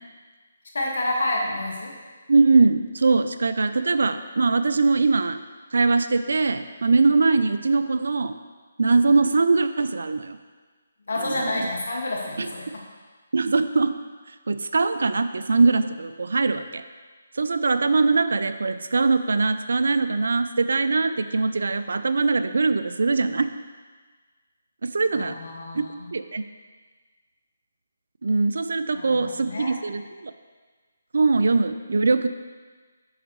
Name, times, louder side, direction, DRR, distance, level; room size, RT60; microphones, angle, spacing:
voice 1, 0.7-1.9 11.1-12.8 25.1-26.1 28.9-29.8, left 1 dB, 70° left, -1 dB, 1.7 m, -29 dB
voice 2, 2.3-5.4 5.7-8.3 8.8-10.4 11.2-11.7 12.4-12.5 13.3-14.0 14.5-16.8 17.3-23.5 24.8-25.4 25.7-25.8 26.1-26.4 28.2-30.3 31.1-32.3, right 3 dB, 75° right, 11 dB, 0.4 m, -22 dB
7.8 x 6.2 x 3.1 m, 1.4 s
hypercardioid pair, 160°, 0 cm